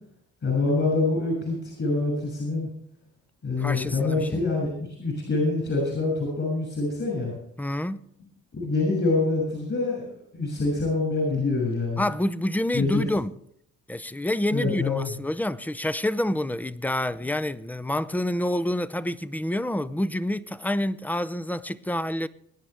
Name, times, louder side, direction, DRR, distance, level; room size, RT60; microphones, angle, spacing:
voice 1, 0.4-2.7 3.4-7.3 8.6-12.0 12.7-13.0 14.5-15.1, left 3 dB, 45° left, 6.3 m, -26 dB
voice 2, 3.6-4.4 7.6-8.1 12.0-13.3 13.9-22.3, left 1 dB, 5° left, 0.5 m, -28 dB
22.5 x 9.9 x 3.4 m
cardioid pair, 90°, 30 cm